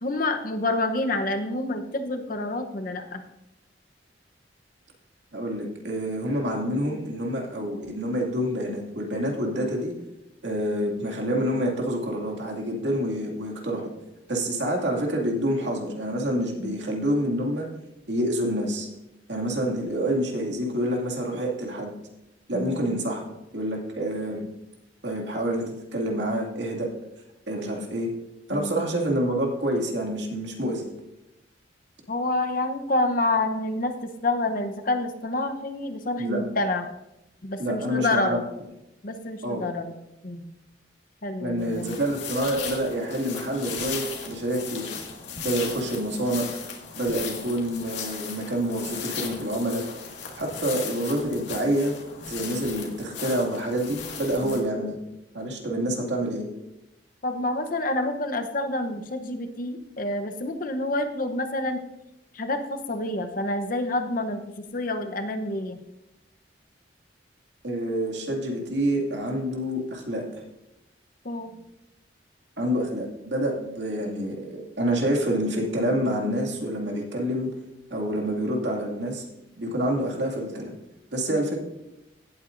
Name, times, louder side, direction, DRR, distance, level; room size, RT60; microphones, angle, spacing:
voice 1, 0.0-3.2 16.6-16.8 22.5-22.9 28.5-28.8 32.1-36.8 37.4-38.4 39.0-40.0 40.2-40.5 41.2-41.9 54.4-54.6 57.2-61.8 62.3-65.8 71.2-71.5 81.3-81.4, left 2 dB, 50° left, 6 dB, 0.9 m, -28 dB
voice 2, 5.3-9.9 10.4-13.9 14.3-17.7 18.1-18.9 19.3-21.9 22.5-23.2 23.5-24.5 25.0-26.9 27.5-28.1 28.5-30.9 36.2-36.4 37.6-38.4 39.4-39.6 41.4-44.9 45.4-46.5 47.0-49.9 50.4-51.9 52.3-55.0 55.3-56.5 67.6-70.3 72.6-77.5 77.9-79.2 79.6-80.7 81.1-81.6, right 1 dB, 70° right, 0 dB, 2.3 m, -27 dB
sound 1, 41.6-54.6, left 6 dB, 75° left, 2.0 m, -37 dB
17.0 x 8.8 x 2.6 m, 0.91 s
head